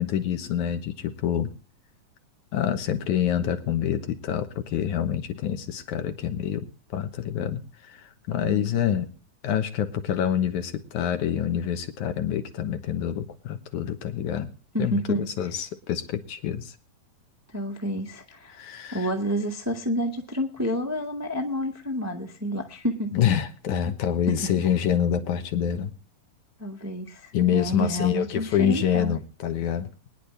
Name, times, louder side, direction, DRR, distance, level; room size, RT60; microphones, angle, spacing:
voice 1, 0.0-1.5 2.5-6.7 6.9-9.1 9.4-14.5 14.8-16.8 18.5-19.1 23.1-25.9 27.3-29.9, left 9 dB, 70° left, 8 dB, 2.5 m, -26 dB
voice 2, 8.4-8.7 14.7-15.3 17.5-18.6 18.9-23.1 24.3-24.4 26.6-29.1, equal, 15° right, 2 dB, 0.5 m, -29 dB
23.0 x 10.0 x 3.3 m, 0.35 s
omnidirectional pair, 3.9 m